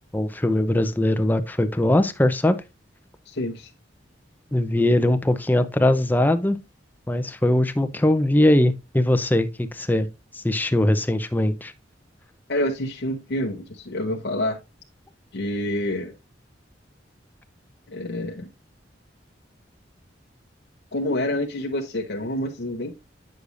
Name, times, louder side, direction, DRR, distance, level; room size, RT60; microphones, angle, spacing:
voice 1, 0.1-2.6 4.5-6.6 7.1-10.1 10.4-11.7, left 1 dB, 10° left, 0.5 m, -21 dB
voice 2, 3.3-3.7 12.5-14.6 15.3-16.1 17.9-18.5 20.9-22.9, left 1 dB, 60° left, 0.8 m, -27 dB
8.3 x 6.5 x 2.5 m
head